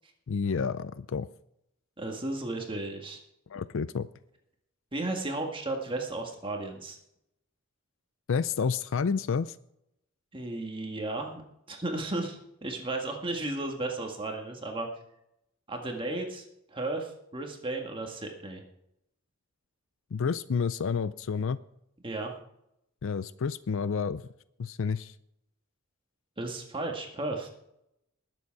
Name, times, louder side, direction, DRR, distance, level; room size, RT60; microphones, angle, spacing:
voice 1, 0.3-1.3 3.5-4.1 8.3-9.6 20.1-21.6 23.0-24.2 24.6-25.1, left 5 dB, 65° left, 15 dB, 0.4 m, -29 dB
voice 2, 2.0-3.2 4.9-7.0 10.3-11.4 11.7-14.9 15.7-16.4 16.7-18.6 22.0-22.3 26.4-27.5, right 2 dB, 25° right, 2 dB, 1.8 m, -34 dB
20.0 x 7.7 x 4.7 m, 0.80 s
head